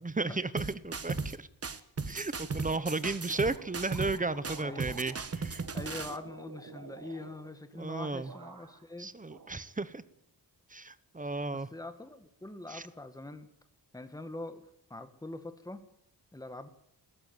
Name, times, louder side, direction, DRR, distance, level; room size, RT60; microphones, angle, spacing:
voice 1, 0.0-1.5 2.1-5.6 7.7-8.3 9.0-10.0 10.7-11.7 12.7-12.8, right 3 dB, 20° right, 16 dB, 1.0 m, -34 dB
sound 1, 0.6-1.4 1.6-4.2 4.4-6.2, right 4 dB, 35° right, 1.3 m, -36 dB
sound 2, 2.6-7.9 8.2-8.9 9.3-10.2, right 5 dB, 50° right, 2.2 m, -51 dB
voice 2, 4.6-4.9 5.7-9.1 11.5-13.5 13.9-14.6 14.9-15.8 16.3-16.7, left 2 dB, 10° left, 8 dB, 1.7 m, -43 dB
21.0 x 14.5 x 9.6 m, 0.74 s
wide cardioid pair, 135°, 42 cm